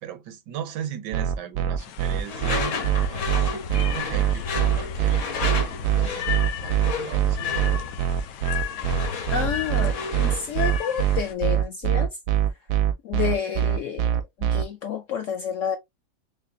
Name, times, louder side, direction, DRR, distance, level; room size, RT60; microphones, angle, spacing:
voice 1, 0.0-2.8 3.0-7.8, right 10 dB, 85° right, 1.4 m, -38 dB
sound 1, 1.1-14.6, right 11 dB, 70° right, 0.8 m, -23 dB
sound 2, 1.8-11.3, left 11 dB, 90° left, 1.2 m, -36 dB
Door / Screech, 2.3-10.5, left 5 dB, 55° left, 1.0 m, -32 dB
voice 2, 9.3-12.1 13.0-14.1 14.4-15.8, left 7 dB, 75° left, 0.7 m, -29 dB
5.8 x 2.1 x 2.6 m
omnidirectional pair, 1.8 m